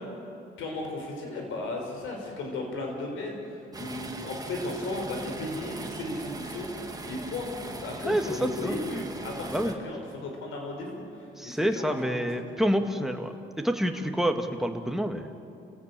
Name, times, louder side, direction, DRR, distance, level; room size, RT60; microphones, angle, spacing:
voice 1, 0.6-3.4 3.7-11.0 11.4-12.0 12.4-12.5 13.9-14.0, left 2 dB, 85° left, 1 dB, 5.8 m, -35 dB
sound 1, 3.7-9.7, right 2 dB, 20° right, 2.2 m, -39 dB
voice 2, 8.0-8.8 9.5-9.7 11.4-13.3 13.6-15.3, equal, ahead, 4 dB, 2.0 m, -27 dB
30.0 x 17.0 x 7.6 m, 2.6 s
cardioid pair, 90°, 20 cm